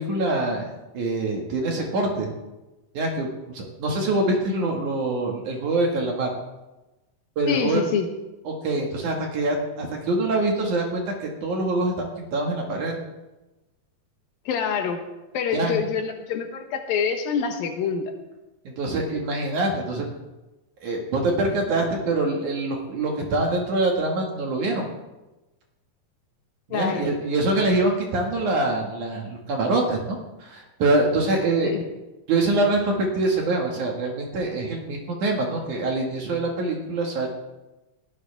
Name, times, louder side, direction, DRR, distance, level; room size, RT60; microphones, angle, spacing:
voice 1, 0.0-2.3 2.9-6.3 7.4-7.8 8.5-13.0 15.5-15.8 18.6-20.1 20.8-24.9 26.7-31.7 32.3-37.3, right 2 dB, 60° right, 0 dB, 3.3 m, -25 dB
voice 2, 7.5-8.1 14.5-15.0 15.3-18.1 26.7-27.1 31.6-31.8, left 6 dB, 85° left, 4 dB, 3.0 m, -26 dB
17.0 x 16.0 x 3.6 m, 1.1 s
omnidirectional pair, 4.0 m